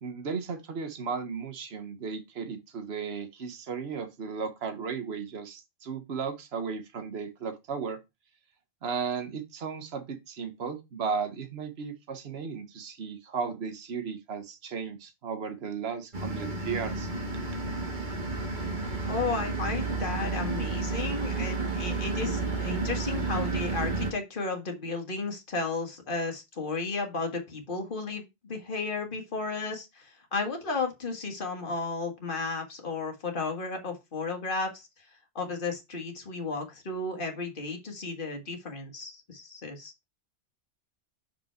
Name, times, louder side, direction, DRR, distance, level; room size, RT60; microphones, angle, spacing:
voice 1, 0.0-8.0 8.8-17.1, right 5 dB, 60° right, 1.4 m, -35 dB
sound 1, 16.1-24.1, right 3 dB, 40° right, 1.6 m, -31 dB
voice 2, 19.0-34.9 35.4-39.9, left 3 dB, 45° left, 1.8 m, -33 dB
5.9 x 5.3 x 4.4 m
omnidirectional pair, 1.2 m